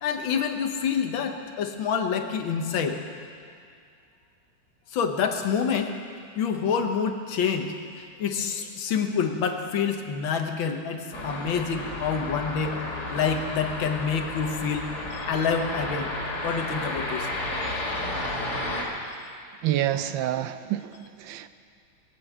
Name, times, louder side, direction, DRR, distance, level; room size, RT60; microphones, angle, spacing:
voice 1, 0.0-3.0 4.9-5.9 6.4-16.1 16.4-17.3, left 6 dB, 85° left, 5 dB, 1.9 m, -27 dB
sound 1, 11.1-18.8, left 1 dB, 55° left, 2.8 m, -32 dB
voice 2, 19.6-21.5, right 12 dB, 80° right, 12 dB, 1.4 m, -28 dB
21.0 x 7.8 x 7.9 m, 2.3 s
omnidirectional pair, 2.1 m